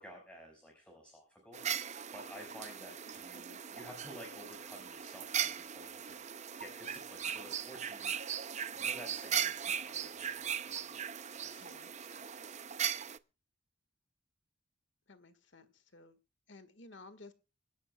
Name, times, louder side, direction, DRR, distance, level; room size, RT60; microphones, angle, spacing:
voice 1, 0.0-1.6 2.1-8.4 8.7-12.5, equal, 5° left, 0 dB, 5.4 m, -53 dB
sound 1, 1.5-13.2, right 8 dB, 35° right, 0.6 m, -38 dB
voice 2, 3.1-3.6 11.6-11.9 15.1-16.2 16.5-17.3, left 2 dB, 60° left, 12 dB, 1.7 m, -55 dB
26.0 x 11.0 x 2.3 m, 0.32 s
head